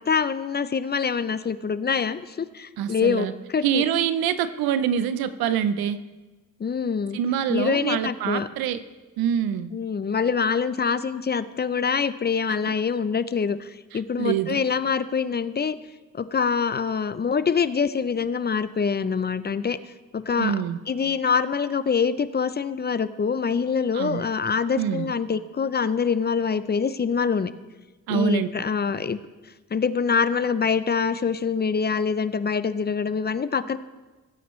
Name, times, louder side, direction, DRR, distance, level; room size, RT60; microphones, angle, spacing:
voice 1, 0.1-3.8 6.6-7.2 7.5-8.5 9.7-15.8 16.1-19.8 20.1-20.6 20.9-27.5 28.1-29.2 29.7-33.8, left 6 dB, 30° left, 15 dB, 0.5 m, -25 dB
voice 2, 2.8-3.3 3.6-6.0 7.1-8.8 9.2-9.7 13.9-14.6 20.4-20.8 23.9-24.3 24.8-25.1 28.1-28.5, right 9 dB, 90° right, 13 dB, 0.7 m, -25 dB
16.5 x 9.2 x 3.1 m, 1.2 s
cardioid pair, 70°, 35 cm